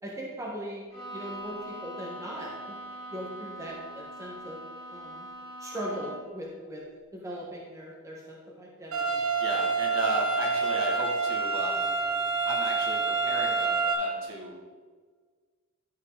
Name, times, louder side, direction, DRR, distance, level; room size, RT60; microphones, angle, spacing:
voice 1, 0.0-2.8 3.1-4.6 4.9-5.3 5.6-6.8 7.1-9.3, equal, 15° right, -4 dB, 1.3 m, -39 dB
Bowed string instrument, 0.9-6.4, right 1 dB, 15° left, 2.6 m, -42 dB
sound 1, 8.9-13.9, right 4 dB, 85° right, 1.8 m, -27 dB
voice 2, 9.4-11.9 12.5-14.5, right 2 dB, 60° right, -1 dB, 1.9 m, -34 dB
12.0 x 5.6 x 3.9 m, 1.5 s
head